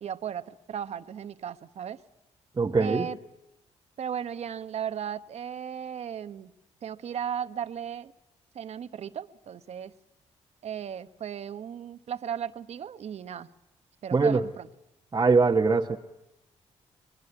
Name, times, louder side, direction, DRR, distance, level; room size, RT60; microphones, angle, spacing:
voice 1, 0.0-2.0 2.8-3.2 4.0-6.5 6.8-8.1 8.5-9.9 10.6-13.5 14.0-14.7, right 8 dB, 65° right, 11 dB, 1.1 m, -36 dB
voice 2, 2.6-3.1 14.1-14.4 15.1-16.0, right 4 dB, 35° right, 0 dB, 1.3 m, -22 dB
24.5 x 20.5 x 9.8 m, 0.88 s
supercardioid pair, 65°, 12 cm